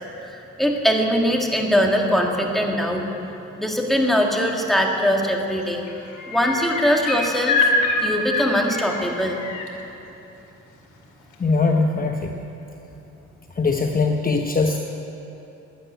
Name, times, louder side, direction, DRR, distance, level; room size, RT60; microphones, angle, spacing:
voice 1, 0.6-3.0 3.6-5.8 6.3-7.7 8.0-9.4, equal, ahead, 0 dB, 2.1 m, -21 dB
sound 1, 5.0-5.3 5.6-9.7 11.3-11.4, left 4 dB, 75° left, 2.4 m, -26 dB
voice 2, 11.4-12.4 13.6-14.8, left 3 dB, 30° left, 3 dB, 1.0 m, -21 dB
12.5 x 10.0 x 9.3 m, 3.0 s
cardioid pair, 90°, 30 cm